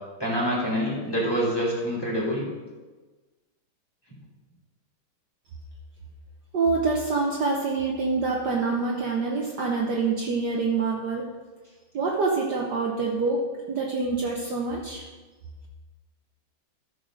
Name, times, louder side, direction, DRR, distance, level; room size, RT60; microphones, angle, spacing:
voice 1, 0.2-2.5, equal, 10° left, -6 dB, 3.2 m, -26 dB
voice 2, 6.5-11.2 11.9-13.4 13.7-15.0, right 4 dB, 55° right, -1 dB, 1.5 m, -26 dB
13.5 x 4.9 x 6.3 m, 1.3 s
omnidirectional pair, 2.3 m